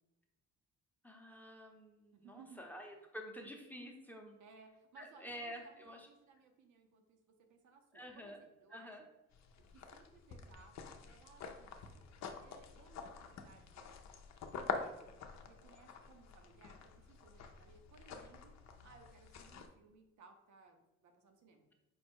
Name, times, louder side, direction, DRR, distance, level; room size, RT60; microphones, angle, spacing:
voice 1, 1.0-4.4 5.0-6.1 7.9-8.4 8.7-9.0, equal, 5° left, 1 dB, 0.7 m, -49 dB
voice 2, 2.1-2.6 4.4-8.9 9.6-12.0 12.4-13.9 14.4-18.5 18.8-21.6, right 4 dB, 75° right, 5 dB, 0.8 m, -62 dB
sound 1, 9.3-19.7, left 5 dB, 60° left, 0.6 m, -47 dB
4.6 x 2.2 x 4.5 m, 0.96 s
cardioid pair, 90°, 30 cm